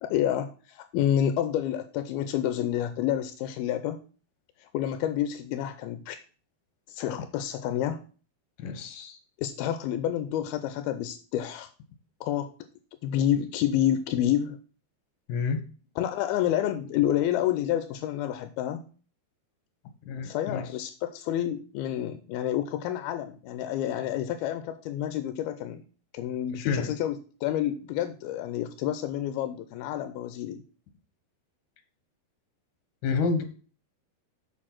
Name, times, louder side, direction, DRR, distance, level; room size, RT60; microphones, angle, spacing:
voice 1, 0.0-4.0 4.6-6.2 6.9-8.0 9.4-11.7 12.2-12.5 13.0-14.6 16.0-18.8 20.2-25.8 26.1-30.6, left 11 dB, 85° left, 10 dB, 2.5 m, -29 dB
voice 2, 8.6-9.2 15.3-15.6 20.1-20.6 26.6-26.9 33.0-33.4, left 5 dB, 65° left, 7 dB, 2.7 m, -29 dB
7.2 x 6.5 x 5.9 m, 0.38 s
omnidirectional pair, 4.4 m